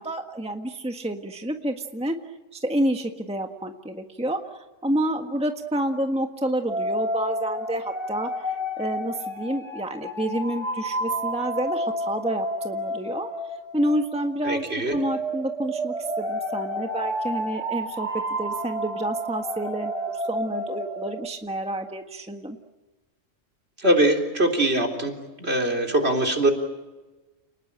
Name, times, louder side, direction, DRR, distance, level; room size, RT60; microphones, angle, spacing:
voice 1, 0.0-2.2 2.5-4.4 4.8-13.3 13.7-14.7 14.9-18.1 18.4-22.6, right 1 dB, 5° right, 4 dB, 1.5 m, -29 dB
sound 1, 6.7-14.6 14.8-21.3, equal, 30° right, 3.9 m, -30 dB
voice 2, 14.4-15.0 23.8-25.1 25.4-26.5, right 1 dB, 55° right, 2 dB, 3.9 m, -22 dB
30.0 x 20.0 x 8.9 m, 1.2 s
omnidirectional pair, 1.3 m